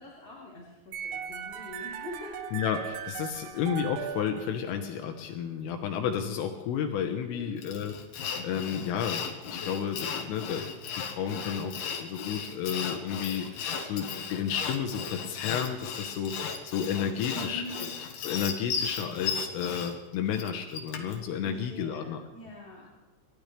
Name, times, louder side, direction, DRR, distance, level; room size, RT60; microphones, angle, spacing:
voice 1, 0.0-2.5 7.3-7.8 17.3-18.0 21.4-22.9, left 1 dB, 20° left, -8 dB, 4.0 m, -44 dB
sound 1, 0.9-5.0, right 9 dB, 75° right, 3.1 m, -38 dB
voice 2, 2.5-17.9 18.2-22.2, left 8 dB, 80° left, 4 dB, 3.6 m, -32 dB
Sawing, 7.6-21.2, left 6 dB, 65° left, 3.1 m, -36 dB
30.0 x 14.0 x 3.3 m, 1.1 s
omnidirectional pair, 5.9 m